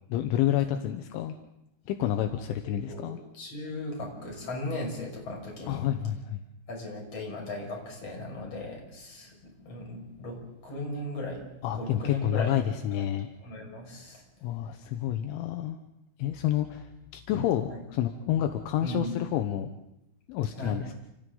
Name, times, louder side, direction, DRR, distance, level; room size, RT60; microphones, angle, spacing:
voice 1, 0.1-1.4 1.9-3.2 5.7-6.4 11.6-13.3 14.4-15.8 16.2-19.7 20.3-20.9, left 11 dB, 80° left, 6 dB, 3.3 m, -29 dB
voice 2, 2.8-5.8 6.7-10.4 10.6-12.5 13.4-14.2 17.7-17.8 18.8-19.1 20.6-20.8, left 1 dB, 30° left, 0 dB, 6.7 m, -37 dB
30.0 x 29.0 x 3.9 m, 0.84 s
omnidirectional pair, 5.7 m